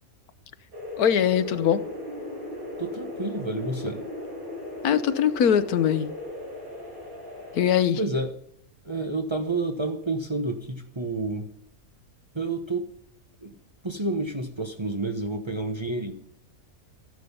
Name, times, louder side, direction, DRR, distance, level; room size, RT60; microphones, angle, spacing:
sound 1, 0.7-7.6, left 1 dB, 35° right, 6.1 m, -37 dB
voice 1, 1.0-1.8 4.8-6.1 7.5-8.0, left 8 dB, 85° left, 12 dB, 1.3 m, -21 dB
voice 2, 2.8-4.0 8.0-8.3 8.8-11.5 12.3-12.9 13.4-13.5 13.8-16.1, right 2 dB, 20° right, 3 dB, 1.0 m, -29 dB
14.0 x 11.0 x 5.4 m, 0.71 s
omnidirectional pair, 1.5 m